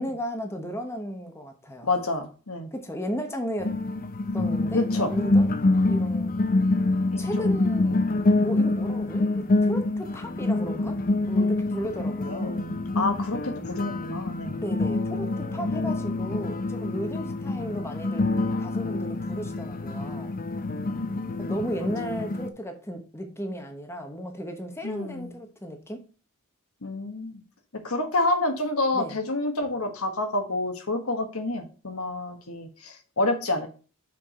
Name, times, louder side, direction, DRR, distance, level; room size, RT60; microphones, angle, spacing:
voice 1, 0.0-1.9 2.7-3.7 4.3-5.5 5.8-6.3 7.2-8.0 8.3-12.6 14.5-18.3 18.6-20.3 21.4-26.0 28.9-29.2, equal, 10° left, 4 dB, 1.0 m, -35 dB
voice 2, 1.8-2.7 4.7-5.1 7.1-7.6 12.3-14.6 20.6-21.5 22.0-22.1 24.8-25.3 26.8-27.4 27.8-33.7, left 2 dB, 70° left, 6 dB, 1.4 m, -29 dB
sound 1, 3.6-22.5, left 2 dB, 40° left, 0.6 m, -26 dB
5.8 x 4.8 x 4.9 m, 0.36 s
head